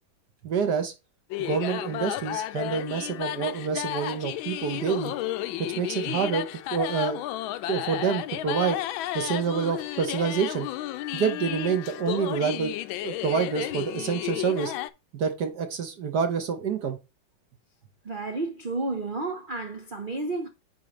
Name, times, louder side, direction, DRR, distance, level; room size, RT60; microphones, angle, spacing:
voice 1, 0.4-0.9 1.4-5.1 5.6-6.5 6.7-7.2 7.7-8.8 9.1-10.7 11.1-12.7 13.0-14.7 15.1-17.0, right 6 dB, 55° right, 1.5 m, -27 dB
sound 1, 1.3-14.9, left 14 dB, 75° left, 1.3 m, -32 dB
voice 2, 18.0-20.5, right 2 dB, 75° right, 0.4 m, -31 dB
9.2 x 4.7 x 3.2 m
omnidirectional pair, 2.3 m